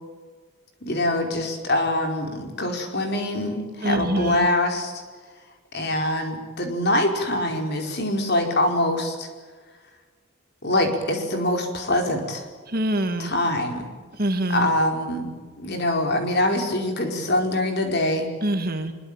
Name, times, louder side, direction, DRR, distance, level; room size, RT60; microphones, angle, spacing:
voice 1, 0.8-5.0 5.7-9.3 10.6-12.4 13.2-13.9 14.5-15.3 15.6-18.3, left 1 dB, 45° left, 4 dB, 4.9 m, -24 dB
voice 2, 3.8-4.4 12.7-13.3 14.2-14.7 18.4-18.9, right 1 dB, 40° right, 7 dB, 2.1 m, -24 dB
25.0 x 23.0 x 9.1 m, 1.5 s
head